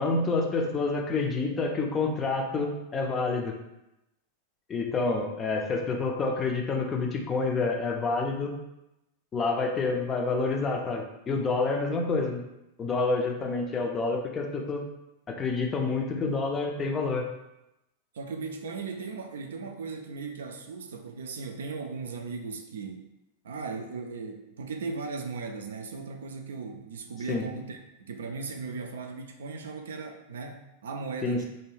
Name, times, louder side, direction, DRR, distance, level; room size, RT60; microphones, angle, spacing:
voice 1, 0.0-3.6 4.7-8.6 9.3-12.4 12.8-14.8 15.3-17.3 27.3-27.4 31.2-31.5, left 3 dB, 25° left, 1 dB, 0.4 m, -28 dB
voice 2, 18.1-23.0 23.4-31.4, right 4 dB, 65° right, 4 dB, 0.3 m, -37 dB
2.6 x 2.2 x 3.1 m, 0.91 s
figure-of-eight pair, 90°, 0 cm